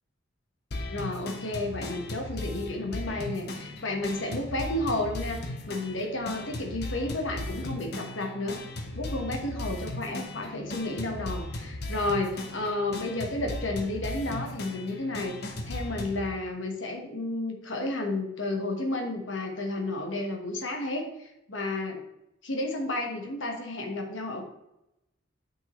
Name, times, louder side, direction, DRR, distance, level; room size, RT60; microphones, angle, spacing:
sound 1, 0.7-16.3, left 1 dB, 55° left, 1.0 m, -37 dB
voice 1, 0.9-8.6 8.9-15.4 15.6-22.0 22.4-24.4, left 2 dB, 80° left, 3 dB, 1.4 m, -32 dB
9.0 x 5.5 x 3.2 m, 0.87 s
head